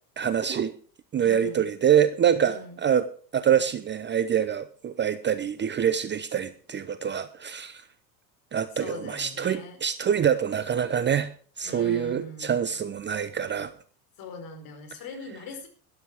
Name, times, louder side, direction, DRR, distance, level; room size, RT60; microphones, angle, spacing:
voice 1, 0.2-0.7 1.1-7.8 8.5-11.3 11.6-13.7, right 8 dB, 20° right, 13 dB, 0.8 m, -25 dB
voice 2, 1.2-1.7 2.4-2.8 8.7-9.8 11.6-12.6 14.2-15.7, left 3 dB, 45° left, 5 dB, 4.8 m, -41 dB
13.0 x 12.0 x 4.8 m, 0.43 s
figure-of-eight pair, 75°, 50 cm